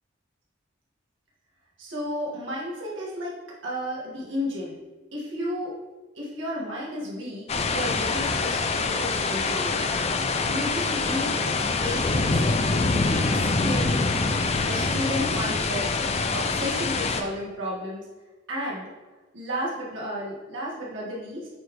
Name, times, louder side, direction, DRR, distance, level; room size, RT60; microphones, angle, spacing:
voice 1, 1.8-3.3 3.6-4.8 5.1-5.7 6.2-9.9 10.5-11.4 11.8-12.4 13.0-15.9 16.3-18.0 18.5-18.8 19.3-21.5, equal, 75° right, -6 dB, 1.9 m, -33 dB
sound 1, 7.5-17.2, left 3 dB, 30° left, 0.4 m, -25 dB
8.5 x 4.2 x 3.2 m, 1.2 s
head